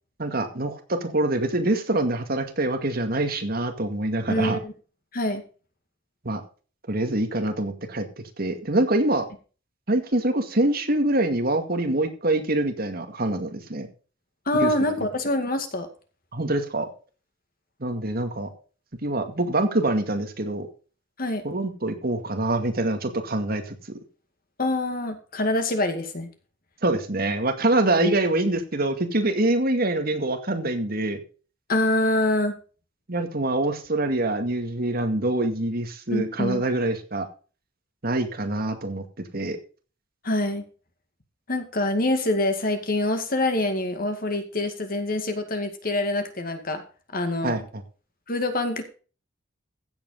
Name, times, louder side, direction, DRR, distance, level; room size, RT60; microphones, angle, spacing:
voice 1, 0.2-4.6 6.2-6.4 6.9-8.1 8.4-9.3 9.9-13.9 14.5-14.7 16.3-16.9 17.8-18.5 19.0-20.7 21.4-23.8 26.8-31.2 33.1-37.3 38.0-39.6 47.4-47.8, right 2 dB, 50° right, 6 dB, 2.1 m, -25 dB
voice 2, 4.3-4.7 5.1-5.4 14.5-15.9 21.2-21.4 24.6-26.3 28.0-28.1 31.7-32.5 36.1-36.6 40.2-40.6 41.5-46.8 47.1-47.6 48.3-48.8, left 1 dB, 50° left, 7 dB, 2.2 m, -25 dB
15.5 x 8.0 x 4.0 m, 0.36 s
head